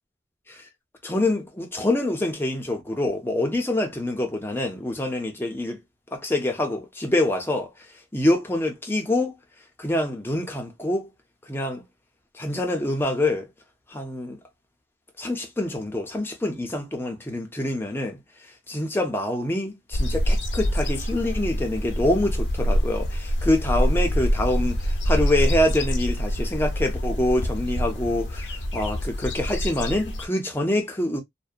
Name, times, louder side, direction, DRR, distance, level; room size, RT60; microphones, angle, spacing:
voice 1, 1.0-5.8 6.1-7.7 8.1-9.4 9.8-11.1 11.5-11.8 12.3-13.5 13.9-14.4 15.2-18.2 18.7-31.2, left 1 dB, 15° left, 0.5 m, -26 dB
sound 1, 19.9-30.3, equal, 85° left, 0.6 m, -25 dB
2.7 x 2.1 x 2.3 m
head